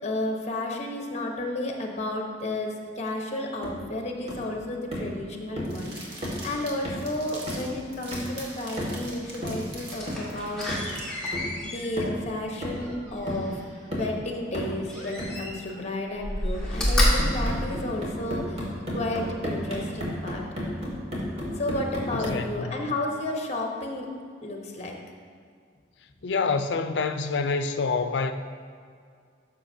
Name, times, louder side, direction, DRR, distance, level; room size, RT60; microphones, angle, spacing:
voice 1, 0.0-11.0 11.6-13.6 13.8-20.4 21.6-24.1 24.4-24.9, left 1 dB, 35° left, 1.0 m, -32 dB
sound 1, 3.6-3.8 4.3-4.5 4.9-5.2 5.6-5.8 6.2-6.5 6.8-7.1 7.5-7.7 8.1-8.4 8.8-9.1 9.4-9.7 10.1-10.3 10.7-10.9 11.3-11.6 12.0-12.2 12.6-13.0 13.3-13.5 13.9-14.2 14.5-14.8 15.2-15.4 17.2-22.5, equal, 35° right, 1.8 m, -33 dB
sound 2, 5.6-11.3, right 2 dB, 60° right, 1.6 m, -43 dB
Slam, 9.9-13.7 14.9-15.8 16.2-18.4 18.9-19.0, equal, 5° left, 1.5 m, -29 dB
voice 2, 22.1-22.8 26.2-28.3, left 4 dB, 70° left, 0.5 m, -27 dB
12.5 x 6.0 x 2.7 m
head